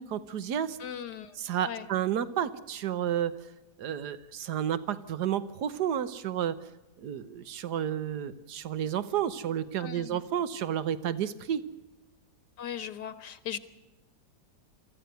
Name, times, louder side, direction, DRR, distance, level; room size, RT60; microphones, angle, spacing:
voice 1, 0.0-0.8 1.4-3.3 3.8-6.6 7.0-11.6, right 10 dB, 75° right, 14 dB, 1.5 m, -31 dB
voice 2, 0.8-1.4 1.6-1.9 9.8-10.2 12.6-13.6, left 9 dB, 75° left, 13 dB, 1.7 m, -38 dB
23.0 x 15.0 x 8.0 m, 1.0 s
omnidirectional pair, 1.8 m